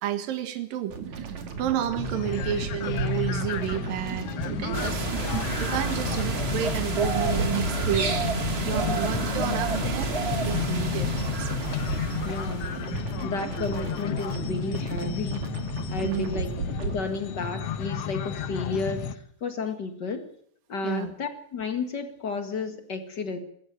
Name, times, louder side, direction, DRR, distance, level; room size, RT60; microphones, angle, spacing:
voice 1, 0.0-5.1 5.6-8.2 8.6-10.1 10.4-11.6 16.0-16.3 20.8-21.1, right 10 dB, 75° right, 7 dB, 3.2 m, -31 dB
sound 1, 0.9-17.0, right 4 dB, 55° right, 3.4 m, -34 dB
sound 2, 2.0-19.2, left 8 dB, 65° left, 1.6 m, -33 dB
sound 3, 4.7-12.8, right 3 dB, 35° right, 1.0 m, -30 dB
voice 2, 12.2-12.8 13.2-15.5 15.9-16.5 16.8-20.3 20.7-23.4, left 4 dB, 40° left, 7 dB, 1.8 m, -32 dB
23.5 x 14.0 x 7.9 m, 0.66 s
omnidirectional pair, 4.0 m